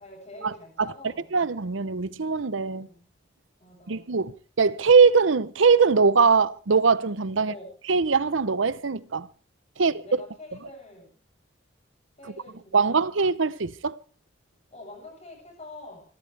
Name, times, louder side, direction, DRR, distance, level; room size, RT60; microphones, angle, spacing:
voice 1, 0.0-1.3 2.8-3.1 3.6-4.2 7.4-7.7 9.8-11.1 12.2-13.1 14.7-16.0, left 2 dB, 35° left, 7.8 m, -45 dB
voice 2, 1.3-2.9 3.9-7.5 7.9-9.3 9.8-10.0 12.2-12.3 12.7-14.0, right 5 dB, 85° right, 0.8 m, -21 dB
26.5 x 13.0 x 3.4 m
head